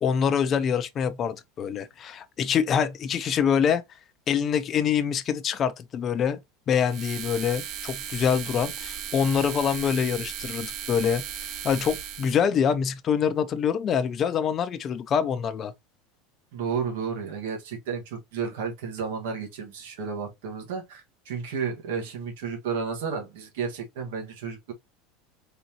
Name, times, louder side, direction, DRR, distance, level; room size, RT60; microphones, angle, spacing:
voice 1, 0.0-3.8 4.3-6.4 6.7-11.2 11.6-15.7, left 7 dB, 25° left, 0.4 m, -25 dB
sound 1, 6.9-12.4, right 9 dB, 35° right, 0.6 m, -36 dB
voice 2, 16.5-24.7, right 6 dB, 85° right, 1.4 m, -32 dB
4.0 x 3.5 x 2.8 m
supercardioid pair, 170°, 0 cm